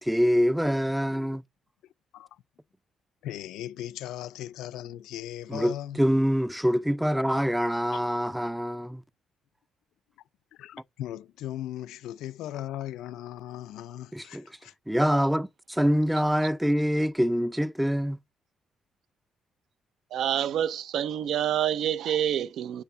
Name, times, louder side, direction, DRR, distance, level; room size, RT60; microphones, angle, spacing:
voice 1, 0.0-1.4 5.5-9.0 14.1-14.4 14.9-18.2, equal, 5° right, 0.4 m, -25 dB
voice 2, 3.2-6.0 7.9-8.1 10.5-14.7, left 12 dB, 90° left, 0.4 m, -38 dB
voice 3, 20.1-22.8, right 10 dB, 75° right, 0.4 m, -27 dB
7.8 x 3.3 x 5.6 m
cardioid pair, 90°, 0 cm